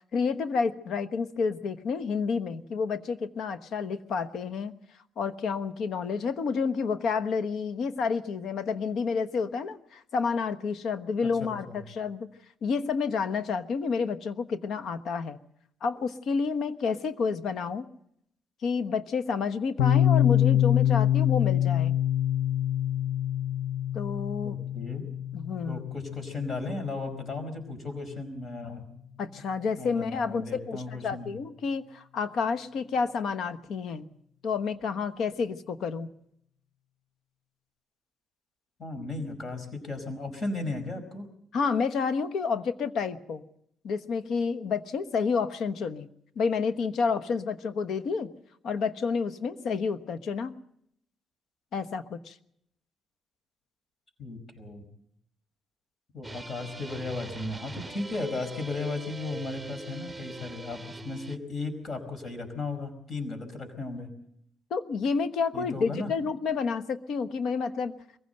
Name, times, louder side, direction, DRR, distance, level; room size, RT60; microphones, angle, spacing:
voice 1, 0.1-4.7 5.2-12.3 12.6-15.4 15.8-17.9 18.6-21.9 23.9-24.6 25.3-25.9 29.2-34.1 34.4-36.1 41.5-43.4 43.8-46.1 46.4-48.3 48.6-50.5 51.7-52.4 64.7-67.9, left 5 dB, 70° left, 11 dB, 1.1 m, -29 dB
voice 2, 11.2-11.8 24.4-25.0 25.7-28.8 29.8-31.3 38.8-41.3 54.2-54.9 56.1-64.1 65.5-66.1, left 3 dB, 45° left, 8 dB, 4.8 m, -35 dB
Piano, 19.8-27.2, left 11 dB, 85° left, 0.8 m, -25 dB
sound 1, 56.2-61.4, right 2 dB, ahead, 2.3 m, -42 dB
22.5 x 16.0 x 7.9 m, 0.73 s
cardioid pair, 90°, 0 cm